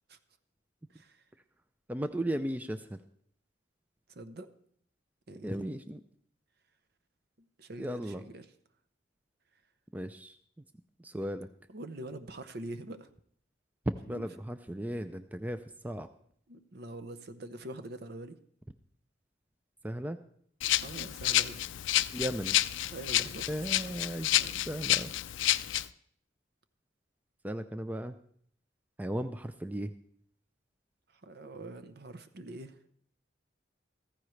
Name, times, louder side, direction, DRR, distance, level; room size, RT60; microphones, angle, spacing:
voice 1, 0.9-1.2 4.1-4.5 5.3-5.8 7.4-8.5 11.7-13.1 14.1-14.3 16.5-18.4 20.8-21.6 22.9-23.5 24.3-24.6 31.1-32.8, right 1 dB, 55° right, 10 dB, 0.8 m, -44 dB
voice 2, 1.9-3.0 5.4-6.0 7.8-8.2 9.9-10.4 11.0-11.5 14.1-16.1 19.8-20.2 22.1-22.6 23.5-24.3 24.7-25.1 27.4-28.1 29.0-29.9, right 1 dB, 10° right, 9 dB, 0.4 m, -36 dB
Rattle (instrument), 20.6-25.9, left 14 dB, 80° left, 0.4 m, -29 dB
14.5 x 14.5 x 3.2 m, 0.63 s
head